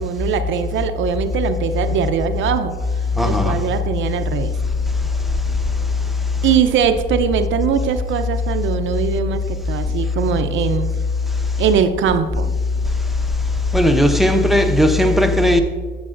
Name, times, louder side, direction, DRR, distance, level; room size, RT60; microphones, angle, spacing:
voice 1, 0.0-2.8 3.2-4.5 6.4-10.9 11.6-12.5, right 7 dB, 75° right, 0.6 m, -21 dB
voice 2, 3.2-3.5 13.7-15.6, left 1 dB, ahead, 0.8 m, -15 dB
11.0 x 7.4 x 2.5 m
cardioid pair, 90°, 20 cm